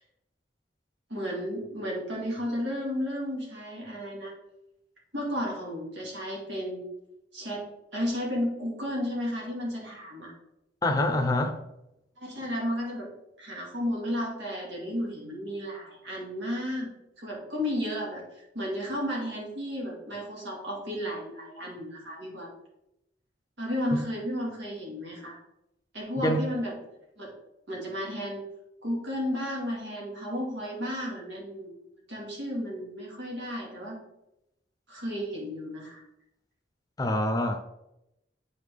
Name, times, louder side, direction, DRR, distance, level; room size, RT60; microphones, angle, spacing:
voice 1, 1.1-4.3 5.1-6.9 7.3-10.3 12.2-13.1 13.4-16.9 17.2-22.5 23.6-25.4 25.9-26.7 27.2-27.3 27.7-28.4 28.8-31.8 32.1-34.0 34.9-36.0, equal, 80° right, -3 dB, 2.4 m, -33 dB
voice 2, 10.8-11.6 26.2-26.4 37.0-37.6, left 1 dB, 20° left, 6 dB, 0.7 m, -25 dB
8.4 x 4.3 x 3.5 m, 0.85 s
head